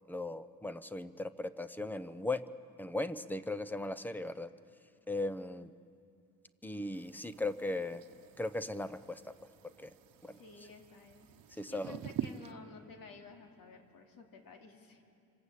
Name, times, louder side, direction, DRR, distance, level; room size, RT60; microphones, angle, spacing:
voice 1, 0.1-2.5 2.8-4.5 5.1-5.7 6.6-8.0 8.4-9.2 9.6-9.9 10.2-10.4 11.6-12.0, left 2 dB, 5° left, 12 dB, 0.6 m, -37 dB
sound 1, 6.9-12.5, right 10 dB, 70° right, 1.0 m, -46 dB
voice 2, 10.2-15.0, left 4 dB, 65° left, 3 dB, 2.8 m, -53 dB
27.0 x 26.0 x 8.3 m, 2.6 s
cardioid pair, 160°, 36 cm